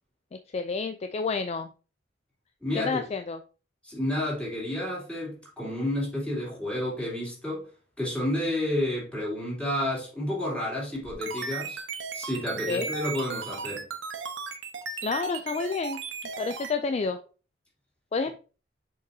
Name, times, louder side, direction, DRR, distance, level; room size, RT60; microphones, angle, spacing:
voice 1, 0.5-1.7 2.7-3.4 12.7-12.9 15.0-16.0 16.4-17.2 18.1-18.3, left 4 dB, 35° left, 0.3 m, -29 dB
voice 2, 2.6-3.0 3.8-7.7 8.0-11.8 12.1-13.8, left 1 dB, 5° left, 3.0 m, -30 dB
sound 1, 11.0-16.7, right 5 dB, 75° right, 1.0 m, -36 dB
6.6 x 5.2 x 2.7 m
head